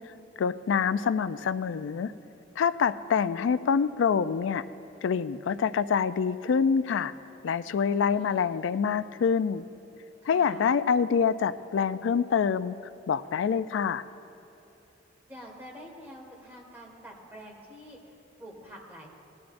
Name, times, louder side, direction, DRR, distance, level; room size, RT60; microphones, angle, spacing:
voice 1, 0.4-2.1 2.6-4.6 5.0-7.1 7.4-9.7 10.3-12.8 13.1-14.0, left 6 dB, 80° left, 14 dB, 0.3 m, -26 dB
voice 2, 7.6-8.5 10.2-10.7 15.3-18.1 18.4-19.1, equal, 10° right, -2 dB, 1.8 m, -47 dB
18.5 x 12.0 x 2.6 m, 3.0 s
head